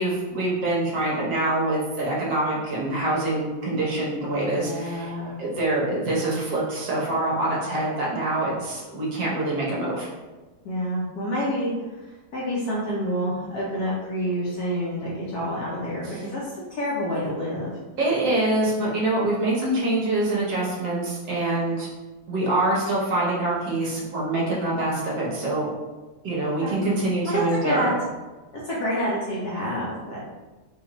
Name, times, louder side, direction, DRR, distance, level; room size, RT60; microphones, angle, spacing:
voice 1, 0.0-5.1 5.4-10.1 16.0-16.3 18.0-21.9 22.3-25.7 26.2-27.9, right 2 dB, 65° right, -5 dB, 1.4 m, -25 dB
voice 2, 4.6-5.4 10.6-17.7 26.4-26.8 27.3-27.9 28.6-30.2, equal, 65° left, -6 dB, 1.0 m, -28 dB
4.2 x 2.4 x 2.9 m, 1.2 s
omnidirectional pair, 2.2 m